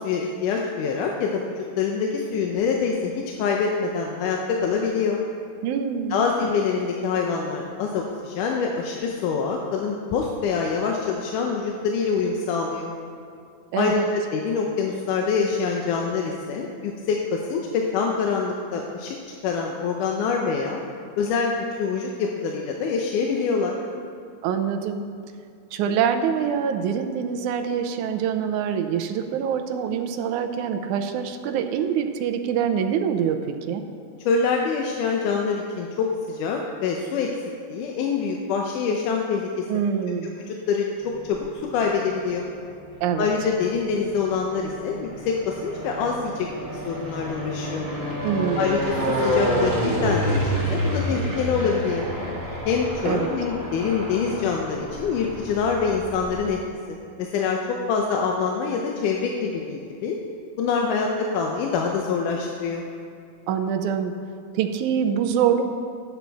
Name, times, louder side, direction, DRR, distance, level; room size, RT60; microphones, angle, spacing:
voice 1, 0.0-5.2 6.1-12.9 13.8-19.2 19.4-20.8 21.2-21.5 21.8-23.8 34.3-37.3 37.7-39.7 40.2-41.5 41.7-42.5 43.2-47.9 48.6-52.1 52.7-56.6 56.9-57.6 57.9-60.2 60.6-62.9, left 5 dB, 85° left, 1 dB, 2.3 m, -25 dB
voice 2, 5.6-6.2 13.7-14.1 24.4-25.1 25.7-33.8 39.7-40.3 43.0-43.3 48.2-48.7 53.0-53.3 63.5-64.1 64.5-65.6, right 8 dB, 80° right, 6 dB, 2.1 m, -25 dB
sound 1, 41.0-41.8 42.5-56.5, equal, 10° right, 1.2 m, -29 dB
12.5 x 9.4 x 4.1 m, 2.4 s
omnidirectional pair, 3.6 m